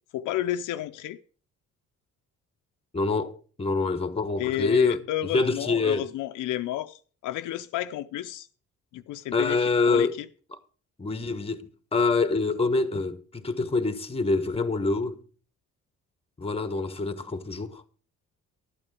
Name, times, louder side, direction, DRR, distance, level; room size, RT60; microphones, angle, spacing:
voice 1, 0.1-1.2 4.4-8.5 8.9-10.3, left 13 dB, 80° left, 0.6 m, -31 dB
voice 2, 2.9-5.0 5.3-6.1 9.3-10.1 11.0-15.2 16.4-17.8, left 3 dB, 20° left, 1.3 m, -26 dB
12.0 x 8.8 x 4.9 m
cardioid pair, 90°, 30 cm